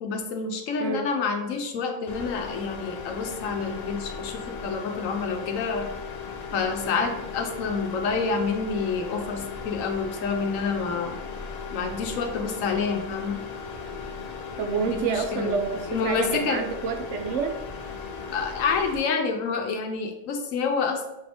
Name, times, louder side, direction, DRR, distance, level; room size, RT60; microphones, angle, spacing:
voice 1, 0.0-5.9 6.5-11.2 11.7-13.4 14.8-15.6 15.9-16.6 18.3-21.1, left 5 dB, 80° left, 5 dB, 1.0 m, -28 dB
sound 1, 2.1-19.0, left 5 dB, 60° left, 0.4 m, -37 dB
voice 2, 14.6-17.5, right 5 dB, 70° right, 6 dB, 0.8 m, -28 dB
6.0 x 3.4 x 2.6 m, 0.90 s
omnidirectional pair, 1.4 m